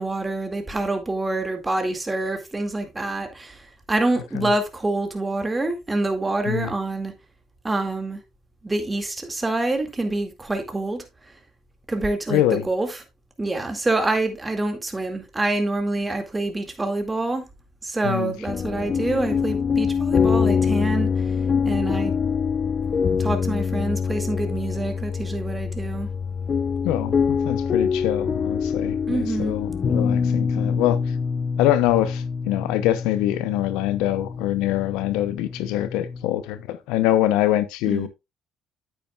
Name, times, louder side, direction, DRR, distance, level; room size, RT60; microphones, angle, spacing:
voice 1, 0.0-7.1 7.6-8.2 8.6-11.3 11.9-13.0 13.4-17.4 17.8-21.4 21.6-22.2 23.2-26.1 29.1-29.5 37.9-38.1, right 2 dB, 20° right, 2.2 m, -26 dB
voice 2, 12.3-12.7 18.0-18.3 26.8-31.0 31.6-38.1, left 13 dB, 85° left, 0.8 m, -24 dB
sound 1, 18.5-36.3, left 6 dB, 40° left, 0.6 m, -25 dB
9.2 x 8.8 x 2.4 m
supercardioid pair, 85°, 0 cm